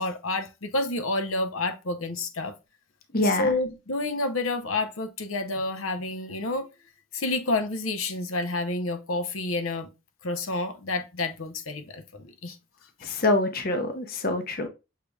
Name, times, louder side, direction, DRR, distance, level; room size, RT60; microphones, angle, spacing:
voice 1, 0.0-2.5 3.2-6.7 7.1-9.9 10.2-12.6, left 2 dB, 80° left, 0.8 m, -29 dB
voice 2, 3.1-3.5 13.0-14.7, left 2 dB, 45° left, 0.8 m, -25 dB
6.6 x 3.3 x 2.3 m
head